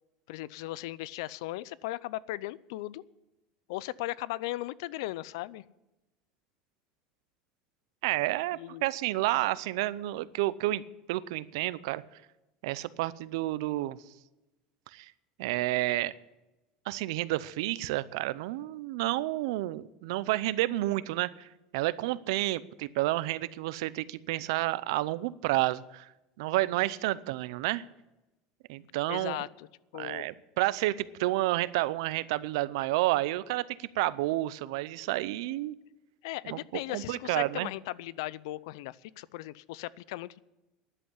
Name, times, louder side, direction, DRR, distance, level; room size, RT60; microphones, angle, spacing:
voice 1, 0.3-3.0 3.7-5.6 8.5-8.9 29.1-29.7 29.9-30.3 36.2-40.4, left 17 dB, 80° left, 20 dB, 0.5 m, -37 dB
voice 2, 8.0-10.8 11.1-12.0 12.6-14.0 14.9-15.1 15.4-16.1 16.9-21.5 21.7-26.1 26.4-27.8 28.7-29.4 29.9-35.7 36.4-36.6 36.9-37.7, right 17 dB, 80° right, 18 dB, 0.6 m, -30 dB
11.0 x 7.9 x 9.8 m, 1.0 s
supercardioid pair, 140°, 2 cm